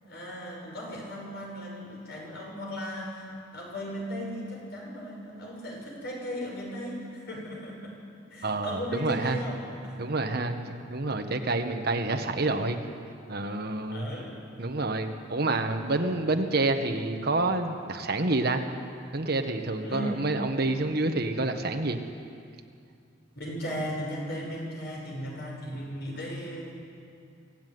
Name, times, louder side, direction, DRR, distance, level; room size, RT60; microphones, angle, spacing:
voice 1, 0.0-3.3 3.5-8.0 8.3-10.0 13.9-14.4 19.8-20.3 23.3-26.7, equal, 60° left, -1 dB, 6.6 m, -36 dB
voice 2, 8.4-9.4 10.0-12.8 13.3-14.0 14.6-18.6 19.1-22.0, right 2 dB, 55° right, 6 dB, 1.4 m, -28 dB
25.0 x 15.5 x 9.5 m, 2.4 s
head